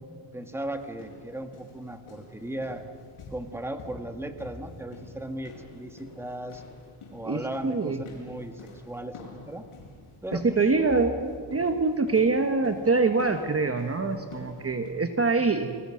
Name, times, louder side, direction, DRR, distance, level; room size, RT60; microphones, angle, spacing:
voice 1, 0.3-2.8 3.3-6.6 7.1-9.7 10.2-10.6, right 1 dB, 5° right, 7 dB, 1.6 m, -37 dB
sound 1, 0.6-14.9, left 2 dB, 85° left, 6.8 m, -47 dB
voice 2, 7.2-8.0 10.3-15.8, right 3 dB, 30° right, 6 dB, 1.2 m, -25 dB
30.0 x 22.0 x 6.3 m, 2.1 s
wide cardioid pair, 150°, 49 cm